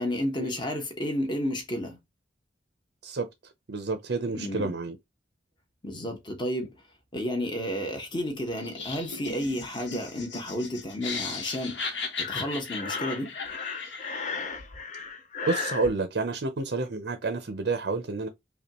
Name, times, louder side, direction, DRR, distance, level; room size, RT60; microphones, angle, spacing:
voice 1, 0.0-2.0 4.3-4.7 5.8-6.7 7.1-13.3, left 1 dB, 25° left, 1.1 m, -32 dB
voice 2, 3.0-5.0 15.4-18.3, right 3 dB, 60° right, 0.6 m, -30 dB
Laughter, 8.6-14.4, left 4 dB, 75° left, 1.2 m, -37 dB
Breathing, 12.2-15.9, left 4 dB, 40° left, 0.6 m, -35 dB
5.3 x 2.3 x 3.0 m
head